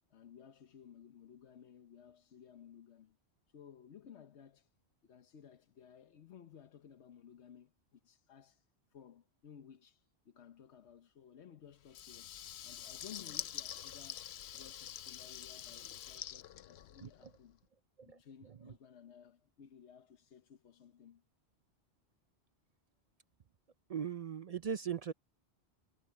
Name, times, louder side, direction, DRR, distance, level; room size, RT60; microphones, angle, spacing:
voice 1, 0.1-3.2 3.5-4.7 5.0-12.3 12.6-17.6 18.0-21.2, left 8 dB, 90° left, 1.2 m, -57 dB
Water tap faucet / Liquid, 11.9-17.4, left 10 dB, 70° left, 0.9 m, -46 dB
voice 2, 23.9-25.1, right 7 dB, 55° right, 0.4 m, -39 dB
omnidirectional pair, 1.1 m